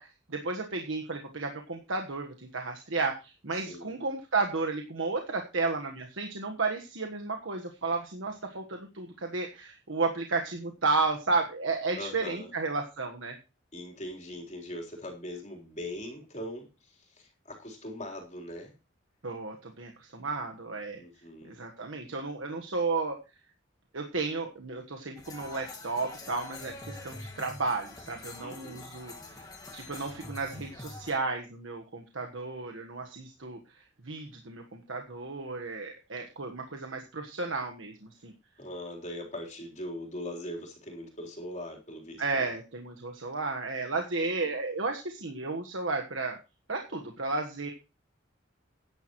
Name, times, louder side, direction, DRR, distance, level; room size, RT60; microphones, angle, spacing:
voice 1, 0.0-13.4 19.2-21.0 21.4-23.2 23.9-29.5 29.7-38.3 42.2-46.4 46.7-47.7, right 3 dB, 90° right, 3 dB, 1.4 m, -33 dB
voice 2, 12.0-12.5 13.7-18.7 21.0-21.5 28.4-28.9 38.6-42.5 44.4-44.5, left 1 dB, 35° left, 0 dB, 3.9 m, -41 dB
sound 1, 25.2-31.1, left 2 dB, 20° left, 2.2 m, -45 dB
13.5 x 10.5 x 3.1 m, 0.29 s
head